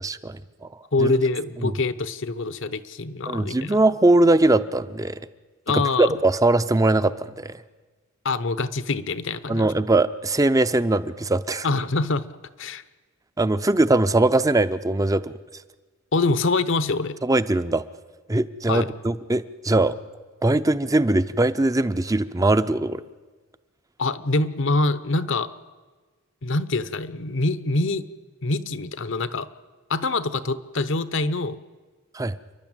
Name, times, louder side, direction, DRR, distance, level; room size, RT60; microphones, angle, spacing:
voice 1, 0.0-0.7 1.0-1.1 1.6-1.7 3.3-5.2 5.7-7.6 9.5-11.7 13.4-15.3 17.2-17.8 18.3-20.0 20.4-23.0 32.1-32.4, right 2 dB, 15° right, 13 dB, 0.6 m, -21 dB
voice 2, 0.9-3.8 5.7-6.2 8.2-9.7 11.6-12.3 12.6-12.8 16.1-17.2 18.7-18.9 24.0-25.5 26.4-28.1 28.4-29.5 29.9-31.6, left 3 dB, 65° left, 14 dB, 0.9 m, -25 dB
29.5 x 11.5 x 8.9 m, 1.4 s
head